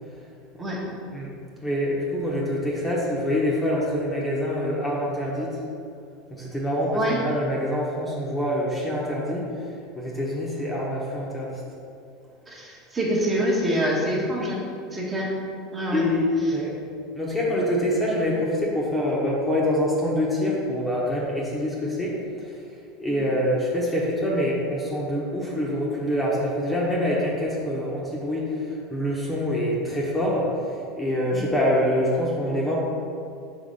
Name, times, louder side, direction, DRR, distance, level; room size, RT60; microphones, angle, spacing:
voice 1, 1.6-5.6 6.3-11.6 15.9-16.7 17.1-22.1 22.4-22.6 23.0-32.8, left 1 dB, 10° left, -5 dB, 1.0 m, -25 dB
voice 2, 12.5-15.3 15.7-16.0 31.3-31.5, equal, 20° right, -4 dB, 1.2 m, -26 dB
4.9 x 3.5 x 5.4 m, 2.4 s
supercardioid pair, 130°, 0 cm